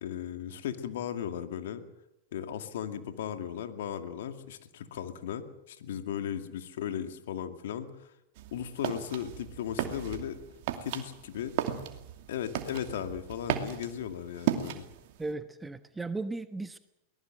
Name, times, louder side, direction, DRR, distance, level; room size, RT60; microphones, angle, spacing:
voice 1, 0.0-1.9 2.3-8.1 8.5-10.4 10.8-11.5 12.3-14.8, left 9 dB, 70° left, 8 dB, 2.3 m, -36 dB
sound 1, 8.4-15.3, right 11 dB, 60° right, 2.6 m, -36 dB
voice 2, 15.2-16.8, right 3 dB, 10° right, 10 dB, 1.2 m, -36 dB
23.0 x 19.5 x 7.8 m, 0.85 s
hypercardioid pair, 100°, 0 cm